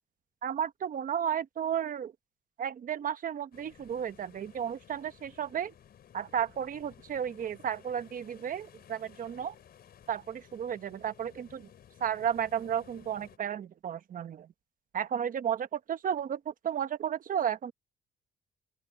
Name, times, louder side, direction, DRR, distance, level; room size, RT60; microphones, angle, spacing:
voice 1, 0.4-2.1 2.6-5.7 6.1-9.5 10.1-11.7 12.0-14.5 14.9-17.7, right 9 dB, 55° right, 1.1 m, -33 dB
sound 1, 3.5-13.4, left 9 dB, 65° left, 5.2 m, -57 dB
open air
cardioid pair, 125°, 17 cm